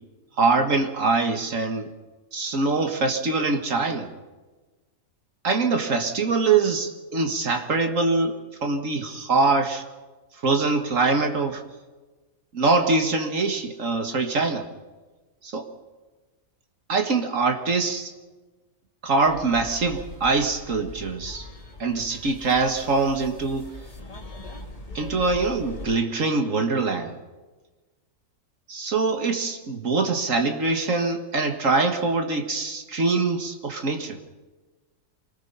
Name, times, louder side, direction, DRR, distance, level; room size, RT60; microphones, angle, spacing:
voice 1, 0.4-1.9 2.3-4.1 5.4-8.4 8.6-9.8 10.4-11.6 12.5-14.6 15.4-15.7 16.9-18.1 19.0-21.5 21.8-23.7 24.9-27.2 28.7-34.2, right 3 dB, 65° right, 5 dB, 2.1 m, -23 dB
sound 1, 19.3-26.0, left 1 dB, 25° left, 2.4 m, -41 dB
25.0 x 19.5 x 5.7 m, 1.2 s
omnidirectional pair, 1.5 m